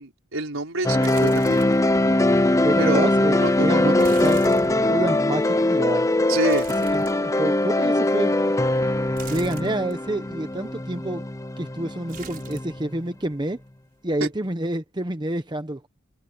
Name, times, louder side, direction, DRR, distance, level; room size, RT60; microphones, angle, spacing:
voice 1, 0.0-1.6 2.8-3.1 3.3-4.1 6.3-6.7 14.2-14.3, right 2 dB, 70° right, 5.1 m, -27 dB
sound 1, 0.8-12.9, left 1 dB, 15° left, 0.6 m, -21 dB
sound 2, 1.0-1.9 2.3-2.4 4.0-5.3 6.5-7.6 9.2-10.0 12.1-12.8 13.1-13.7 14.0-14.2, right 6 dB, 45° right, 5.2 m, -43 dB
voice 2, 2.6-6.1 6.9-8.3 9.3-11.3 11.6-13.6 14.0-15.9, right 1 dB, 20° right, 0.9 m, -28 dB
head